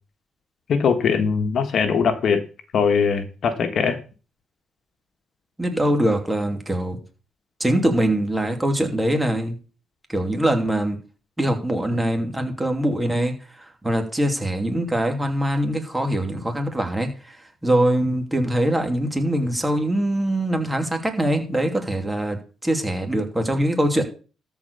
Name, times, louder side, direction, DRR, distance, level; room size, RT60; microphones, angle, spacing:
voice 1, 0.7-2.4 2.7-4.0, left 6 dB, 60° left, 9 dB, 1.5 m, -21 dB
voice 2, 5.6-7.0 7.6-9.6 10.1-11.0 11.4-17.4 17.6-22.4 22.6-24.0, right 1 dB, 10° right, 4 dB, 2.7 m, -23 dB
13.5 x 4.8 x 6.9 m, 0.36 s
cardioid pair, 90°, 0 cm